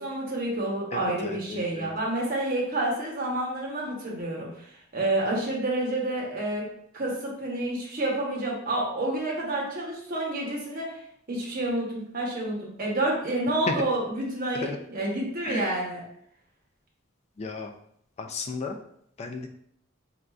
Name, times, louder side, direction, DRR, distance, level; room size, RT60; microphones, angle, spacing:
voice 1, 0.0-4.7 4.9-6.6 6.9-11.0 11.3-16.0, right 1 dB, 45° right, -3 dB, 1.0 m, -29 dB
voice 2, 0.9-1.9 13.7-13.8 14.5-14.8 15.4-15.6 17.4-17.7 18.2-18.8 19.2-19.5, left 3 dB, 35° left, 5 dB, 0.3 m, -33 dB
4.2 x 2.5 x 2.3 m, 0.67 s
head